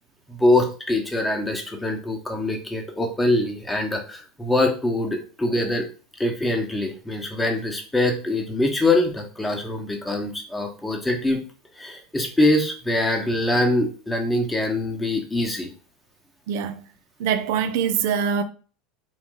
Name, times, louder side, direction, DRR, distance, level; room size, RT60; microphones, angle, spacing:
voice 1, 0.3-5.9 6.2-11.4 11.8-15.7, left 1 dB, 10° left, 1.1 m, -23 dB
voice 2, 16.5-16.8 17.2-18.4, right 7 dB, 70° right, 0.5 m, -23 dB
3.9 x 2.3 x 3.8 m
hypercardioid pair, 95°, 0 cm